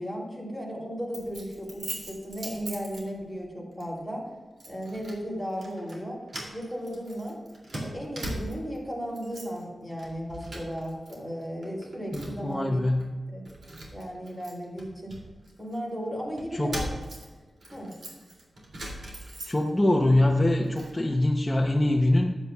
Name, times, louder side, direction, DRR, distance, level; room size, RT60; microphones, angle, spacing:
voice 1, 0.0-4.3 4.7-6.2 6.5-7.4 7.7-12.8 13.3-13.4 13.9-15.2 15.6-16.9 17.7-17.9, equal, 5° right, -3 dB, 3.1 m, -35 dB
Keys jangling, 1.1-3.4 3.8-4.0 4.6-5.2 5.5-6.0 6.3-8.8 9.1-9.6 9.9-11.1 11.4-12.5 13.0-13.1 13.4-15.8 16.4-19.9 20.3-21.0, right 1 dB, 75° right, 2.6 m, -40 dB
voice 2, 12.1-13.1 16.5-16.7 19.5-22.3, left 1 dB, 10° left, -1 dB, 0.7 m, -23 dB
14.0 x 9.4 x 2.3 m, 1.3 s
wide cardioid pair, 150°, 0 cm